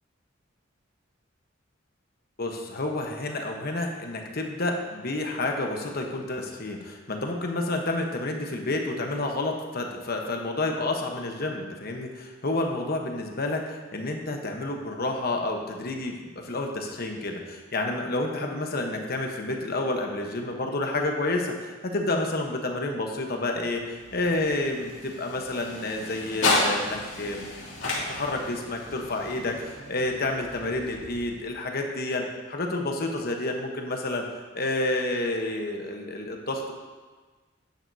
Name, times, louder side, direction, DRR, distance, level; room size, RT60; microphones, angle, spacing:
voice 1, 2.4-27.4 28.1-34.3 34.5-36.7, left 2 dB, 50° left, 2 dB, 1.1 m, -29 dB
sound 1, 23.5-31.7, left 2 dB, 70° left, 2.5 m, -32 dB
11.5 x 9.3 x 2.8 m, 1.4 s
head